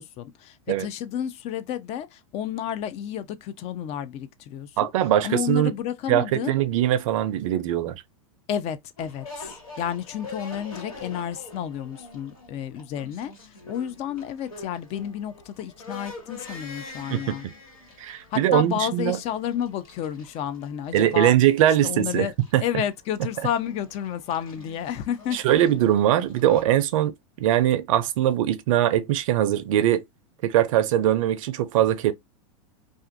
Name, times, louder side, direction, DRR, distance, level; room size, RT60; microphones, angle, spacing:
voice 1, 0.0-4.9 5.2-6.6 8.5-17.5 18.3-21.3 21.8-22.3 22.6-25.4, left 9 dB, 35° left, 0.4 m, -31 dB
voice 2, 4.8-5.7 6.1-8.0 17.1-17.4 18.0-19.2 20.9-22.3 22.5-22.6 25.3-27.1 27.4-30.0 30.4-32.1, right 12 dB, 65° right, 0.5 m, -21 dB
sound 1, 9.0-26.6, left 3 dB, 85° left, 1.8 m, -45 dB
2.5 x 2.4 x 2.4 m
hypercardioid pair, 115°, 18 cm